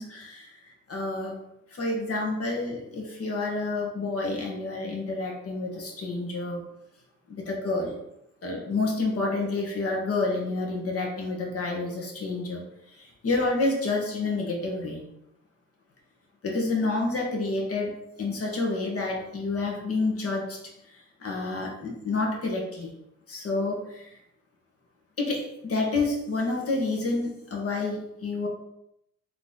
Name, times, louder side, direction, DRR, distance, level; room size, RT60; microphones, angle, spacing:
voice 1, 0.0-1.4 1.7-6.6 7.3-8.0 8.4-12.6 12.9-15.0 16.4-17.9 18.2-20.6 20.9-22.9 23.3-24.1 25.2-28.5, left 3 dB, 50° left, 0 dB, 1.4 m, -29 dB
4.0 x 3.3 x 3.9 m, 0.82 s
cardioid pair, 90°, 30 cm